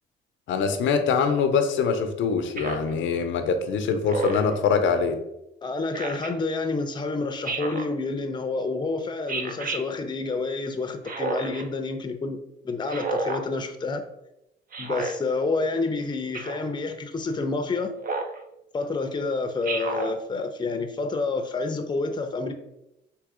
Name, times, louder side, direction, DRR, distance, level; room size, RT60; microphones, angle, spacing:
voice 1, 0.5-5.2, left 5 dB, 75° left, 7 dB, 0.6 m, -23 dB
Speech synthesizer, 2.6-2.9 4.1-4.5 5.9-6.3 7.4-7.9 9.3-9.8 11.0-11.6 12.9-13.4 14.7-15.1 16.3-16.7 18.0-18.4 19.6-20.1, right 3 dB, 45° right, 0.7 m, -30 dB
voice 2, 5.6-12.4 12.6-14.0 14.8-17.9 18.7-22.5, left 3 dB, 20° left, 6 dB, 0.6 m, -28 dB
3.8 x 2.8 x 4.8 m, 0.87 s
cardioid pair, 90°, 20 cm